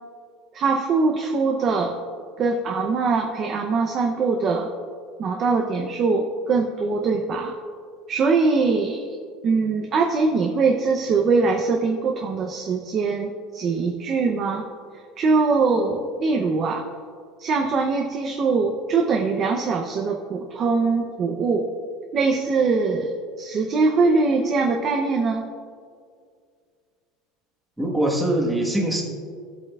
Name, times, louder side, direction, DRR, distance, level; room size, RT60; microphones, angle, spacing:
voice 1, 0.5-2.0 2.4-4.7 5.2-7.5 8.1-9.0 9.4-14.7 15.2-16.8 17.4-21.7 22.1-25.5, right 4 dB, 30° right, 2 dB, 0.6 m, -22 dB
voice 2, 27.8-29.0, right 1 dB, 5° right, -3 dB, 1.3 m, -22 dB
16.0 x 8.1 x 2.3 m, 2.1 s
cardioid pair, 170°, 0 cm